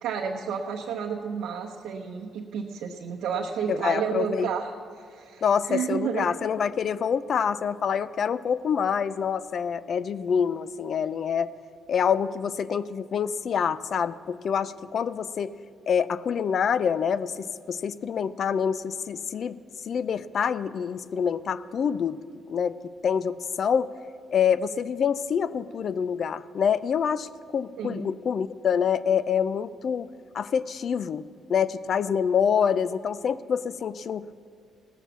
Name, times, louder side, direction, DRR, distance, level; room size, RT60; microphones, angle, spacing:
voice 1, 0.0-6.3 27.8-28.1, right 7 dB, 80° right, -2 dB, 0.9 m, -31 dB
voice 2, 3.7-4.5 5.4-11.5 11.9-15.5 15.9-19.6 19.8-22.2 22.5-23.9 24.3-30.1 30.3-31.2 31.5-34.3, left 7 dB, 55° left, 16 dB, 0.4 m, -26 dB
17.5 x 7.0 x 7.2 m, 2.3 s
cardioid pair, 90°, 0 cm